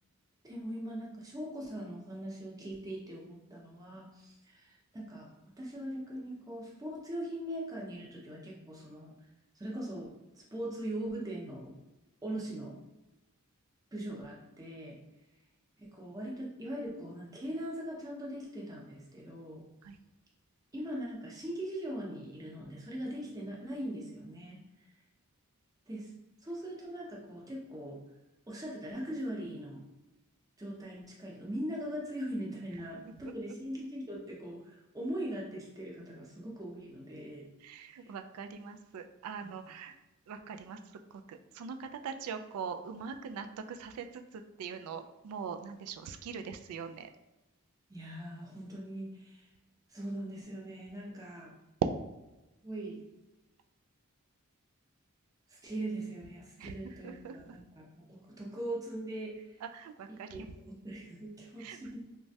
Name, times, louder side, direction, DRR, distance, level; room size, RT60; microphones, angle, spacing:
voice 1, 0.4-5.3 5.6-9.2 9.5-11.8 12.2-12.8 13.9-15.0 15.8-19.6 20.7-24.6 25.9-26.1 26.4-28.0 28.5-29.8 30.6-37.5 38.0-38.1 47.9-49.5 49.9-51.5 52.6-53.0 55.5-59.6 60.1-62.1, right 1 dB, 15° right, -3 dB, 0.6 m, -41 dB
voice 2, 37.6-39.9 40.3-47.1 51.8-51.9 56.6-57.6 59.6-60.5 61.6-61.8, right 6 dB, 80° right, 12 dB, 0.3 m, -41 dB
3.1 x 2.2 x 2.6 m, 1.0 s
head